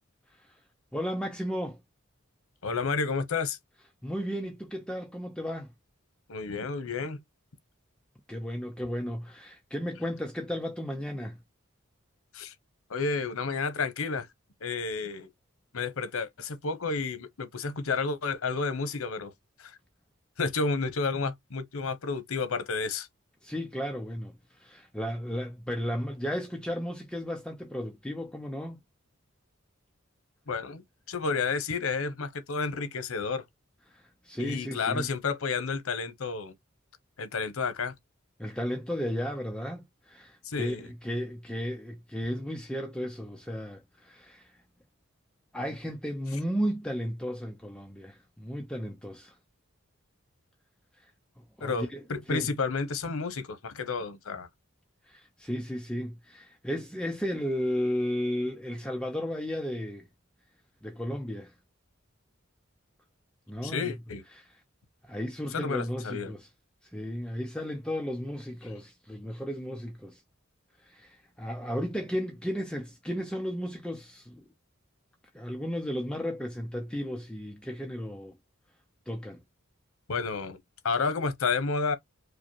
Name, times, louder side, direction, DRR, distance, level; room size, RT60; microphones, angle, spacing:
voice 1, 0.3-0.6 0.9-1.8 4.0-5.7 8.3-11.4 23.4-28.8 33.9-35.1 38.4-44.6 45.5-49.4 51.0-51.1 51.4-52.5 55.0-60.1 60.8-61.5 63.5-64.0 64.3-64.5 65.0-66.5 66.8-70.2 70.8-74.4 75.3-78.4 79.1-79.4, equal, 5° left, 0.5 m, -34 dB
voice 2, 2.6-3.6 6.3-7.2 12.3-12.5 12.9-14.3 14.6-15.3 15.7-19.3 19.6-19.8 20.4-23.1 30.5-33.4 34.4-36.5 37.2-37.9 40.4-40.8 51.6-54.5 63.6-64.2 65.5-66.3 80.1-80.6 80.8-81.9, left 4 dB, 85° left, 0.8 m, -31 dB
5.0 x 2.1 x 2.9 m
head